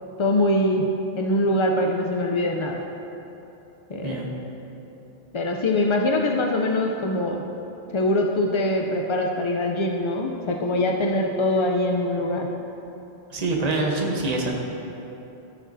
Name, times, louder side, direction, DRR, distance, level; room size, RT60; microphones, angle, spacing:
voice 1, 0.2-0.9 1.2-2.8 3.9-4.3 5.3-7.4 7.9-12.5, left 1 dB, 55° left, 1 dB, 0.3 m, -23 dB
voice 2, 13.3-14.5, right 2 dB, 40° right, -1 dB, 1.0 m, -25 dB
14.5 x 6.4 x 2.6 m, 3.0 s
omnidirectional pair, 1.1 m